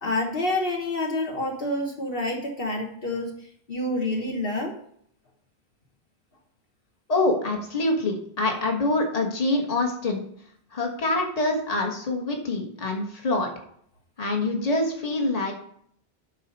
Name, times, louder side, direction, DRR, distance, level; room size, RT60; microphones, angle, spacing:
voice 1, 0.0-3.3 3.7-4.7, left 1 dB, 60° left, 0 dB, 1.5 m, -28 dB
voice 2, 7.1-10.2 10.7-13.5 14.2-15.5, left 2 dB, 35° left, 2 dB, 1.4 m, -25 dB
11.0 x 4.2 x 5.3 m, 0.67 s
omnidirectional pair, 1.1 m